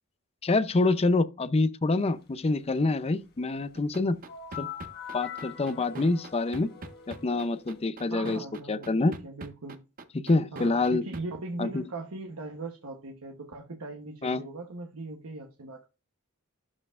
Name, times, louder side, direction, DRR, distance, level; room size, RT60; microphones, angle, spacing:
voice 1, 0.4-4.2 4.6-4.7 5.1-6.7 7.1-8.4 8.7-9.1 10.1-11.0 11.6-11.8 14.2-14.4, left 3 dB, 25° left, 0.5 m, -26 dB
sound 1, 3.7-11.2, right 2 dB, 40° right, 0.7 m, -41 dB
sound 2, 4.3-7.9, left 8 dB, 45° left, 1.4 m, -43 dB
voice 2, 8.1-9.8 10.5-15.9, right 2 dB, 70° right, 1.0 m, -39 dB
12.0 x 4.4 x 2.4 m
head